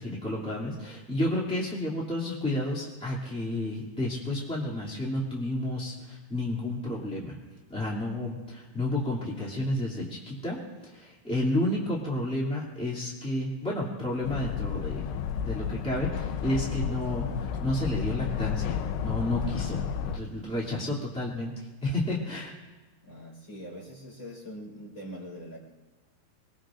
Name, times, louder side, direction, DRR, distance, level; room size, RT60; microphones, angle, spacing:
voice 1, 0.0-7.4 7.7-15.0 15.4-21.5 21.8-22.5, left 1 dB, 5° left, -6 dB, 1.2 m, -31 dB
sound 1, 14.2-20.2, left 8 dB, 80° left, 3.1 m, -32 dB
voice 2, 23.0-25.6, equal, 20° left, -4 dB, 4.6 m, -42 dB
27.5 x 20.5 x 2.6 m, 1.2 s
omnidirectional pair, 5.4 m